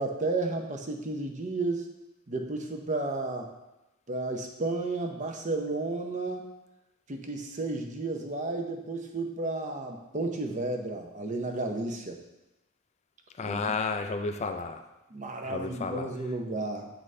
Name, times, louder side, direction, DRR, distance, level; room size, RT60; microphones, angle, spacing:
voice 1, 0.0-1.8 2.3-3.5 4.1-6.4 7.1-12.2 13.4-13.6 15.1-16.9, right 2 dB, 35° right, 3 dB, 0.7 m, -32 dB
voice 2, 13.4-14.8 15.5-16.1, left 4 dB, 30° left, 7 dB, 0.4 m, -32 dB
7.7 x 4.0 x 3.2 m, 0.97 s
head